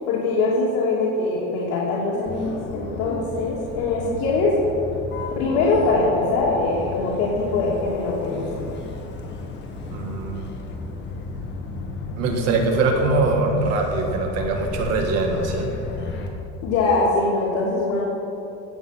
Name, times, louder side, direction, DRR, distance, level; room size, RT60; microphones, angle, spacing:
voice 1, 0.1-4.6 5.4-8.5 16.6-18.0, left 3 dB, 75° left, -6 dB, 2.7 m, -22 dB
Motor vehicle (road), 2.3-16.3, left 3 dB, 40° left, 1.7 m, -34 dB
voice 2, 9.9-10.5 12.2-15.7, right 3 dB, 60° right, 3 dB, 1.8 m, -22 dB
17.0 x 8.0 x 5.9 m, 2.9 s
cardioid pair, 165°, 29 cm